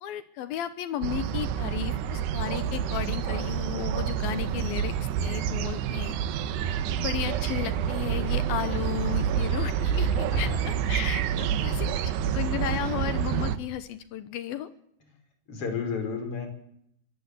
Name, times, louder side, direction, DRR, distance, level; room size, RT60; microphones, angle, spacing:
voice 1, 0.0-6.2 6.9-10.1 10.4-14.7, left 11 dB, 70° left, 12 dB, 2.6 m, -34 dB
sound 1, 1.0-13.6, right 8 dB, 80° right, 3.2 m, -28 dB
voice 2, 11.4-11.8 15.5-16.5, left 5 dB, 35° left, 6 dB, 5.8 m, -33 dB
23.5 x 15.5 x 8.4 m, 0.71 s
omnidirectional pair, 4.7 m